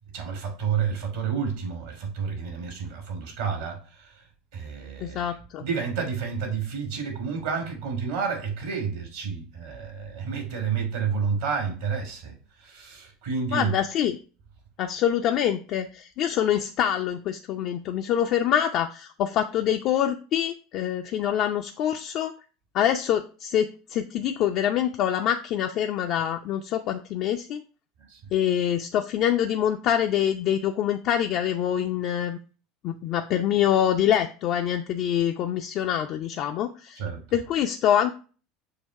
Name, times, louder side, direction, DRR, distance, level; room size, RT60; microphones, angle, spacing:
voice 1, 0.1-4.2 4.5-13.8 28.0-28.2 37.0-37.2, right 6 dB, 70° right, 2.7 m, -30 dB
voice 2, 5.0-5.6 13.5-14.2 14.8-22.3 22.7-27.6 28.3-32.4 32.8-37.0 37.3-38.1, left 10 dB, 50° left, 0.5 m, -25 dB
6.7 x 2.8 x 5.3 m
hypercardioid pair, 75°, 0 cm